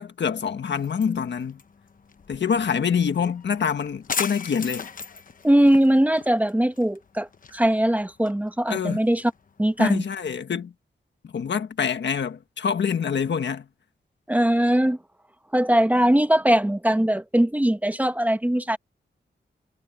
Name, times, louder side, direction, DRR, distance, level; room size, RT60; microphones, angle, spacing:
voice 1, 0.0-1.6 2.3-4.8 8.7-9.0 9.8-10.7 11.2-13.7, left 7 dB, 75° left, 1.6 m, -26 dB
sound 1, 0.7-10.4, left 5 dB, 50° left, 1.0 m, -38 dB
voice 2, 5.4-9.2 9.6-10.0 14.3-15.0 15.5-18.8, right 1 dB, 10° right, 1.0 m, -21 dB
wide cardioid pair, 165°, 18 cm